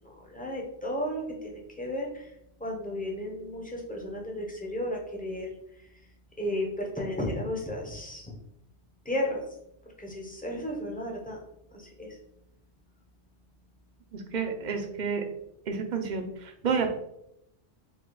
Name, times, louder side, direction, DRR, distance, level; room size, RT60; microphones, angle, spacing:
voice 1, 0.0-2.3 2.6-5.5 6.4-8.3 9.0-9.4 10.0-11.4 11.7-12.2, left 1 dB, 10° left, -1 dB, 0.7 m, -34 dB
voice 2, 14.1-15.3 15.7-16.9, right 5 dB, 50° right, 4 dB, 0.7 m, -30 dB
4.9 x 2.3 x 3.9 m, 0.77 s
omnidirectional pair, 1.2 m